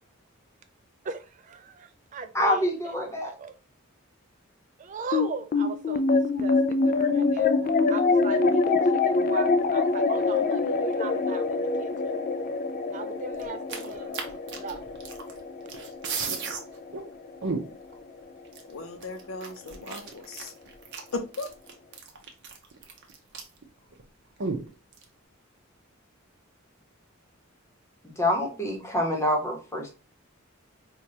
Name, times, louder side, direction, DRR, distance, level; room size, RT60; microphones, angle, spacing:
voice 1, 1.0-3.5 4.8-8.8 9.0-11.9 12.9-14.1 14.5-14.8, right 5 dB, 35° right, 9 dB, 0.3 m, -39 dB
voice 2, 2.3-3.3 28.0-29.9, left 1 dB, 15° left, 1 dB, 1.0 m, -26 dB
sound 1, 5.1-17.7, left 4 dB, 45° left, 0.3 m, -25 dB
sound 2, 13.4-15.4 15.7-16.6 16.9-17.0 17.4-17.9 18.5-18.6 19.0-23.6 23.9-24.0 24.4-25.0, right 4 dB, 60° right, 0.8 m, -34 dB
voice 3, 18.7-20.5 21.1-21.5, left 3 dB, 75° left, 6 dB, 0.6 m, -36 dB
4.7 x 2.4 x 2.8 m, 0.34 s
head